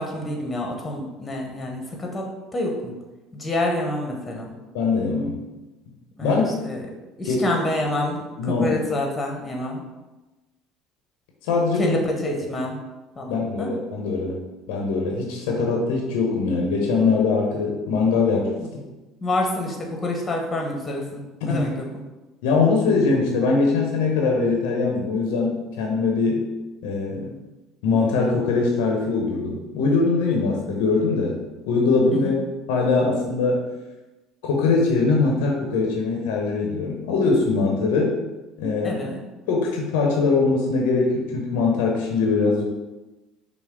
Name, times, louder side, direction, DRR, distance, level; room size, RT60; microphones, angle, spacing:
voice 1, 0.0-2.3 2.5-2.9 3.3-4.5 6.2-6.8 7.2-9.8 11.8-12.8 13.2-13.7 18.6-18.7 19.2-21.8 32.1-32.3 38.8-39.2, left 1 dB, 20° left, 0 dB, 1.1 m, -27 dB
voice 2, 4.7-5.4 6.2-6.6 7.3-7.4 8.4-8.7 11.4-12.0 13.3-14.4 14.7-18.5 21.4-21.7 22.4-26.5 26.8-27.4 27.8-31.4 31.7-32.3 32.7-33.6 34.4-38.1 38.6-39.0 39.5-42.6, left 4 dB, 70° left, -1 dB, 0.8 m, -22 dB
5.8 x 2.0 x 3.7 m, 1.1 s
hypercardioid pair, 60°, 0 cm